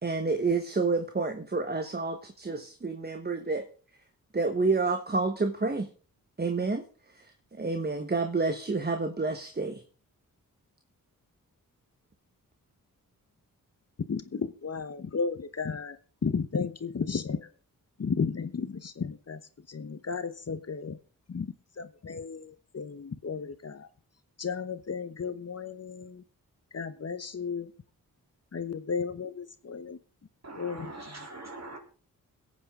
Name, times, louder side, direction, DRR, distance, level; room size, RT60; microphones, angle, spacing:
voice 1, 0.0-3.7 4.3-5.9 6.4-6.8 7.1-7.3 7.5-9.8, right 3 dB, 30° right, 7 dB, 1.3 m, -29 dB
voice 2, 14.1-17.5 18.0-21.0 21.3-23.9 24.4-26.2 26.7-27.7 28.5-30.0 30.5-31.3, left 5 dB, 45° left, 11 dB, 1.0 m, -34 dB
voice 3, 30.4-31.8, right 2 dB, 50° right, 3 dB, 3.5 m, -42 dB
21.5 x 8.6 x 3.8 m, 0.39 s
cardioid pair, 65°, 35 cm